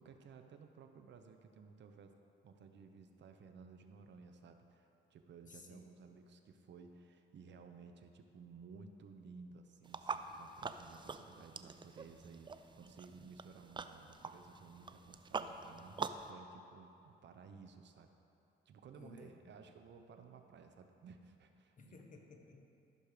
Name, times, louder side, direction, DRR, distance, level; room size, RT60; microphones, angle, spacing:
voice 1, 0.0-2.2 2.4-18.1 18.7-22.0, right 5 dB, 65° right, 6 dB, 0.9 m, -56 dB
voice 2, 5.4-5.9 18.9-19.7 21.8-22.7, left 3 dB, 40° left, 3 dB, 1.3 m, -57 dB
sound 1, 9.8-16.3, right 4 dB, 25° right, 0.4 m, -45 dB
13.5 x 6.5 x 5.0 m, 2.8 s
cardioid pair, 90°, 20 cm